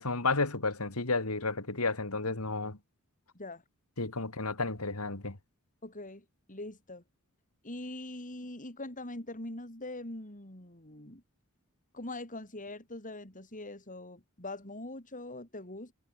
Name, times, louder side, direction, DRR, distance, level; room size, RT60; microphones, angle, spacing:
voice 1, 0.0-2.8 4.0-5.4, left 3 dB, 80° left, 3.0 m, -32 dB
voice 2, 5.8-7.0 7.6-11.2 11.9-15.9, left 2 dB, 35° left, 6.0 m, -42 dB
head